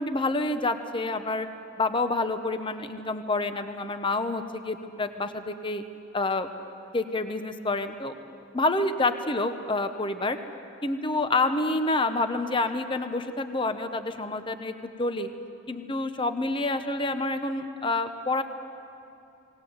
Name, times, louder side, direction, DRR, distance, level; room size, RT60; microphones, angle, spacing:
voice 1, 0.0-1.5 1.8-5.8 6.1-6.5 6.9-8.2 8.5-10.4 10.8-15.3 15.7-18.4, left 2 dB, 25° left, 8 dB, 0.8 m, -28 dB
19.0 x 19.0 x 7.9 m, 2.8 s
head